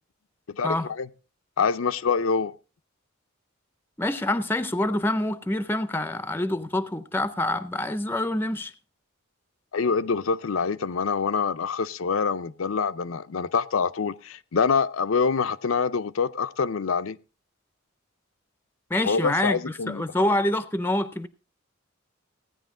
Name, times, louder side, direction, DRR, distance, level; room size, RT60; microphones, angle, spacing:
voice 1, 0.5-1.1 1.6-2.5 9.7-17.2 19.0-20.0, left 5 dB, 75° left, 0.5 m, -25 dB
voice 2, 4.0-8.7 18.9-19.6 19.9-21.3, left 1 dB, 10° left, 0.5 m, -26 dB
16.5 x 9.8 x 3.7 m
head